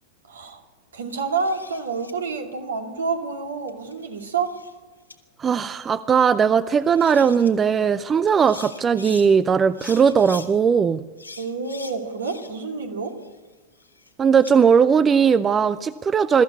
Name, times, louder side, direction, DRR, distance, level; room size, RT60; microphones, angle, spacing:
voice 1, 0.3-0.6 0.9-4.6 11.4-13.1, right 4 dB, 70° right, 4 dB, 2.5 m, -28 dB
sound 1, 1.1-2.1 3.7-4.7 5.1-5.2 6.6-6.7 6.9-7.5 8.3-9.3 9.7-10.5 11.2-12.7 13.0-14.5, left 3 dB, 85° left, 1.7 m, -42 dB
voice 2, 5.4-11.0 14.2-16.4, right 6 dB, 20° right, 17 dB, 0.5 m, -18 dB
22.0 x 14.0 x 8.4 m, 1.3 s
figure-of-eight pair, 90°, 0 cm